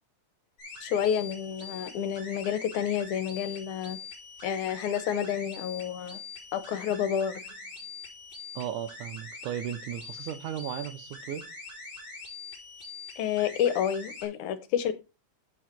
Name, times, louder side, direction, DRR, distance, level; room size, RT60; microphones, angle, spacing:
sound 1, 0.6-14.3, left 4 dB, 30° left, 5.8 m, -44 dB
voice 1, 0.8-4.0 4.4-6.2 6.5-7.3 13.2-14.9, left 9 dB, 80° left, 2.4 m, -29 dB
voice 2, 8.6-11.4, right 10 dB, 80° right, 2.4 m, -35 dB
7.9 x 7.4 x 4.4 m
omnidirectional pair, 3.5 m